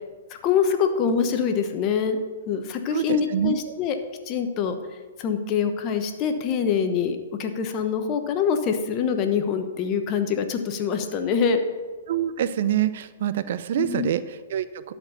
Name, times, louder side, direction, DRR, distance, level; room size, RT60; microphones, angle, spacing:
voice 1, 0.4-2.2 2.5-3.9 4.3-4.8 5.2-11.6 13.8-14.1, left 6 dB, 35° left, 7 dB, 1.0 m, -24 dB
voice 2, 2.9-3.6 12.1-14.9, right 10 dB, 60° right, 14 dB, 0.5 m, -26 dB
12.0 x 4.5 x 6.8 m, 1.4 s
hypercardioid pair, 125°, 0 cm